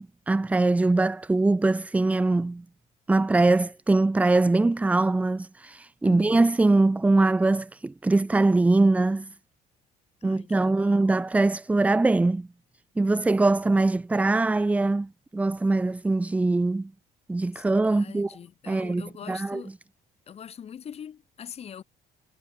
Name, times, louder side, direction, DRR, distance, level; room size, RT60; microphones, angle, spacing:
voice 1, 0.0-2.6 3.1-9.3 10.2-12.5 13.0-16.9 17.3-18.3 18.7-19.6, right 2 dB, 10° right, 0.3 m, -22 dB
voice 2, 6.0-6.4 10.2-11.1 17.5-19.7 20.3-21.8, left 8 dB, 35° left, 0.8 m, -43 dB
cardioid pair, 110°, 17 cm